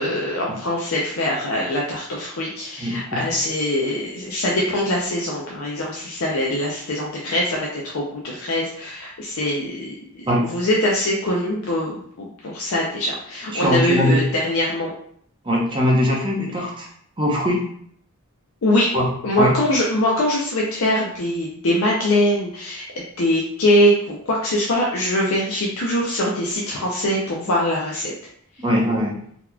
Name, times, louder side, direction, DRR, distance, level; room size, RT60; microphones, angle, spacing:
voice 1, 0.0-14.9 18.6-18.9 19.2-28.1, left 1 dB, 65° left, -3 dB, 0.5 m, -22 dB
voice 2, 13.5-14.2 15.4-16.9 17.2-17.6 18.9-19.1 19.4-19.5 28.6-29.1, equal, 20° right, -2 dB, 0.7 m, -20 dB
3.9 x 2.9 x 2.2 m, 0.65 s
head